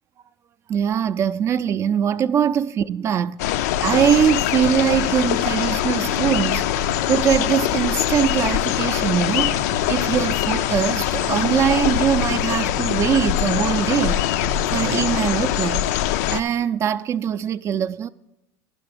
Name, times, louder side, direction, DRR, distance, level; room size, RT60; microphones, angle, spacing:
voice 1, 0.7-3.4 3.8-6.6 7.1-9.6 9.9-14.2 14.7-15.9 16.3-18.1, right 8 dB, 35° right, 0.4 m, -22 dB
sound 1, 3.4-16.4, left 12 dB, 80° left, 0.4 m, -23 dB
sound 2, 3.5-15.1, right 9 dB, 70° right, 0.6 m, -39 dB
10.5 x 6.0 x 6.6 m
supercardioid pair, 120°, 8 cm